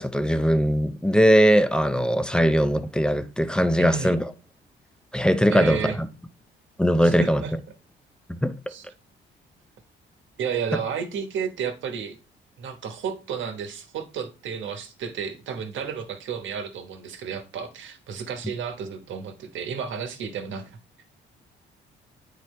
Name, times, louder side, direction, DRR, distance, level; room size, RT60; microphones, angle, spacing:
voice 1, 0.0-4.2 5.1-6.1 6.8-7.4 8.3-8.5, equal, 5° left, 0.6 m, -20 dB
voice 2, 3.8-4.2 5.5-6.0 7.0-7.5 8.7-8.9 10.4-12.2 12.6-20.8, right 7 dB, 75° right, 1.3 m, -32 dB
8.9 x 4.3 x 3.2 m
cardioid pair, 90°, 20 cm